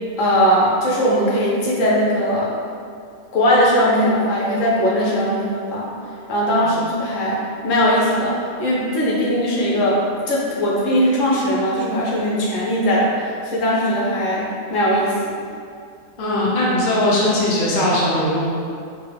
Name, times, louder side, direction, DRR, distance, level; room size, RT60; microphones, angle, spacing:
voice 1, 0.2-2.5 3.3-5.9 6.3-7.4 7.6-10.0 10.3-15.4, equal, 70° left, -5 dB, 1.0 m, -19 dB
voice 2, 16.2-18.5, left 1 dB, 45° left, -6 dB, 0.7 m, -19 dB
3.7 x 2.0 x 3.3 m, 2.4 s
omnidirectional pair, 1.4 m